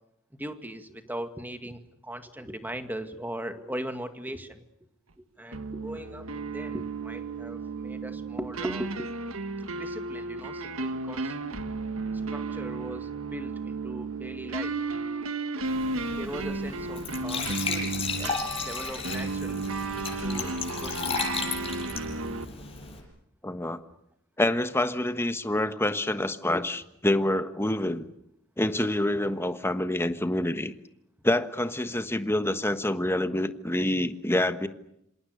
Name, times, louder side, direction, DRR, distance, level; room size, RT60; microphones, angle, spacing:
voice 1, 0.3-4.6 5.2-6.3 6.5-9.1 9.7-11.4 12.3-14.8 16.1-18.4 18.7-19.7 20.2-20.5 20.8-21.2, right 1 dB, 10° right, 7 dB, 2.1 m, -39 dB
sound 1, 5.5-22.4, right 3 dB, 85° right, 1.7 m, -33 dB
Glass / Trickle dribble / Fill (with liquid), 15.7-23.0, left 5 dB, 30° left, 7.1 m, -34 dB
voice 2, 23.4-23.8 24.4-28.0 28.6-30.7 31.2-34.7, left 1 dB, 10° left, 10 dB, 1.3 m, -27 dB
27.5 x 27.0 x 6.7 m, 0.80 s
head